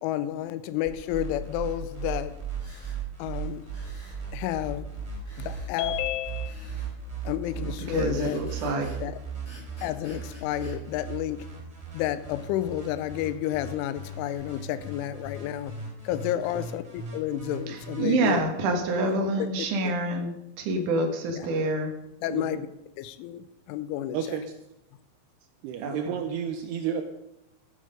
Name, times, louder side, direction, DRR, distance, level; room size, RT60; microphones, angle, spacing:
voice 1, 0.0-2.3 3.2-3.6 4.3-4.9 5.4-6.7 7.2-8.4 9.0-9.2 9.8-11.4 11.9-15.7 16.0-18.4 19.4-19.5 19.8-19.9 22.2-22.7 23.0-24.4, left 13 dB, 80° left, 3.0 m, -31 dB
sound 1, 0.8-18.4, right 5 dB, 5° right, 4.2 m, -37 dB
sound 2, 2.6-3.0 3.7-4.2 5.3-5.7 6.5-6.9 7.8-9.0 9.5-10.8, left 2 dB, 20° left, 5.7 m, -50 dB
voice 2, 7.5-8.9 17.7-21.9 25.8-26.1, right 2 dB, 60° right, 2.2 m, -27 dB
voice 3, 22.3-22.6 24.1-24.5 25.6-27.0, right 8 dB, 85° right, 2.3 m, -31 dB
15.5 x 10.0 x 5.2 m
omnidirectional pair, 5.9 m